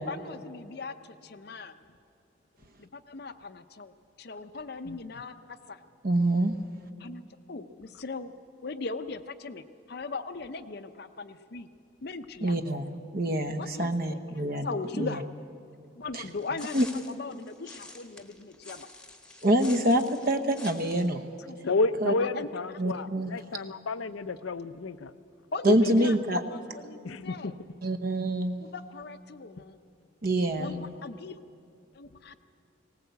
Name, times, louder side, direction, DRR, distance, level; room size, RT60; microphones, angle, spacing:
voice 1, 0.0-1.7 2.8-5.8 7.0-7.2 7.5-8.3 8.6-11.7 12.0-12.6 13.6-14.2 14.5-15.2 15.9-18.9 21.5-21.8 22.1-22.5 25.5-27.6 28.6-29.8 30.6-31.4 31.9-32.3, left 3 dB, 50° left, 9 dB, 0.6 m, -39 dB
voice 2, 6.0-6.5 12.4-14.7 15.0-15.1 16.1-16.2 16.7-16.8 19.4-21.2 22.0-22.1 22.8-23.3 25.6-26.4 27.8-28.6 30.2-30.7, right 1 dB, 45° right, 8 dB, 0.9 m, -26 dB
sound 1, 16.1-21.1, left 2 dB, 5° left, 1.1 m, -47 dB
voice 3, 21.6-25.1 25.7-26.1 27.0-27.5 30.5-30.9, left 3 dB, 90° left, 12 dB, 0.7 m, -31 dB
19.0 x 18.5 x 8.2 m, 2.7 s
head